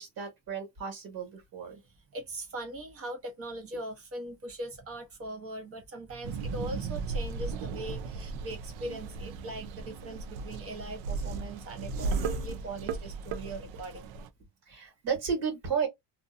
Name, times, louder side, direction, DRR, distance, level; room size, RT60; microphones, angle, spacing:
voice 1, 0.0-1.8 14.7-15.9, right 6 dB, 45° right, 1.5 m, -33 dB
voice 2, 1.8-14.1, right 1 dB, 30° right, 0.9 m, -40 dB
sound 1, 6.2-14.3, right 4 dB, 70° right, 0.6 m, -36 dB
2.6 x 2.5 x 2.5 m
cardioid pair, 175°, 48 cm